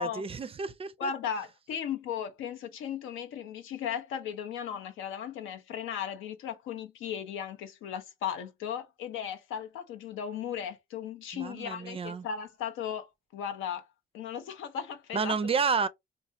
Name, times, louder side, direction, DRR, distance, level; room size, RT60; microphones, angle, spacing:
voice 1, 0.0-1.1 11.3-12.3 15.1-15.9, right 5 dB, 30° right, 0.4 m, -30 dB
voice 2, 1.0-13.8 14.1-15.4, left 8 dB, 85° left, 0.6 m, -36 dB
3.2 x 2.4 x 2.6 m
cardioid pair, 90°, 20 cm